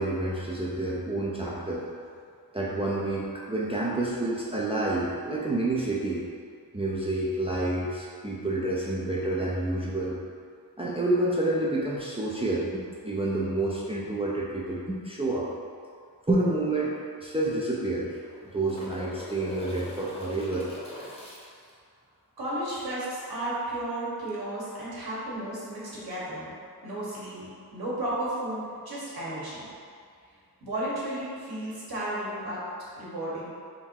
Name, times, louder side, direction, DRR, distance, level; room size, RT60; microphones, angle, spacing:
voice 1, 0.0-1.8 2.5-6.2 6.7-10.2 10.8-15.5 16.3-18.1 18.5-20.7, right 2 dB, 15° right, -6 dB, 0.5 m, -28 dB
sound 1, 16.5-16.6 16.9-17.0 18.0-21.7 24.3-24.4, left 1 dB, 15° left, 0.9 m, -42 dB
voice 2, 22.4-26.5 26.8-29.7 30.6-32.6 33.0-33.5, right 1 dB, 70° right, -8 dB, 1.5 m, -33 dB
3.7 x 2.7 x 4.5 m, 2.2 s
wide cardioid pair, 100°, 38 cm